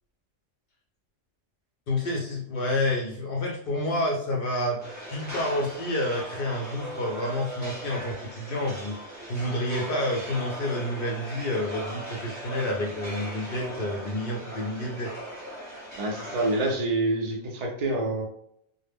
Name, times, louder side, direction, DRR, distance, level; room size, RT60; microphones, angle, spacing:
voice 1, 1.9-15.1, left 1 dB, 60° left, -2 dB, 0.6 m, -29 dB
sound 1, 4.8-16.7, right 1 dB, 15° right, 0.8 m, -39 dB
voice 2, 16.0-18.3, right 2 dB, 75° right, 1 dB, 0.3 m, -27 dB
2.1 x 2.0 x 3.3 m, 0.69 s
omnidirectional pair, 1.3 m